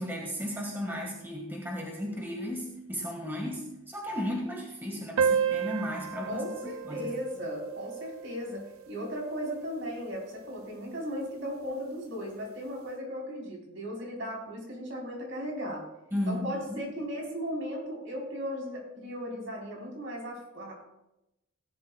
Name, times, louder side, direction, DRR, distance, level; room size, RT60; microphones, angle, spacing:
voice 1, 0.0-7.1 16.1-16.9, equal, 10° right, -1 dB, 1.7 m, -35 dB
sound 1, 5.2-10.1, right 6 dB, 85° right, 0.6 m, -32 dB
voice 2, 6.3-15.8 16.3-20.8, equal, 65° right, -2 dB, 4.2 m, -36 dB
17.5 x 12.0 x 2.4 m, 0.90 s
head